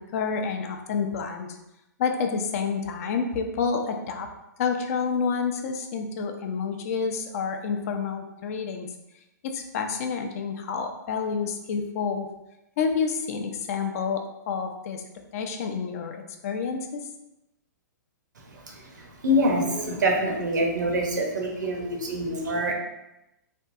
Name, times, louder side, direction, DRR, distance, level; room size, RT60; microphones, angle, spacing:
voice 1, 0.0-1.5 2.0-4.3 4.6-8.9 9.4-12.3 12.8-15.0 15.3-17.0, left 5 dB, 50° left, 5 dB, 0.4 m, -29 dB
voice 2, 18.7-22.7, equal, 80° right, 1 dB, 0.7 m, -25 dB
3.4 x 2.3 x 2.6 m, 0.90 s
hypercardioid pair, 125°, 10 cm